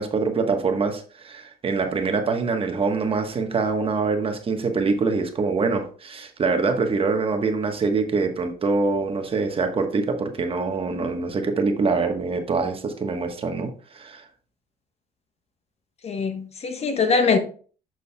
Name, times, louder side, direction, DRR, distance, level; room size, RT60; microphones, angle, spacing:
voice 1, 0.0-14.2, right 4 dB, 35° right, 1.1 m, -24 dB
voice 2, 16.0-17.4, left 4 dB, 40° left, 1.0 m, -22 dB
8.2 x 6.3 x 2.2 m
cardioid pair, 110°, 17 cm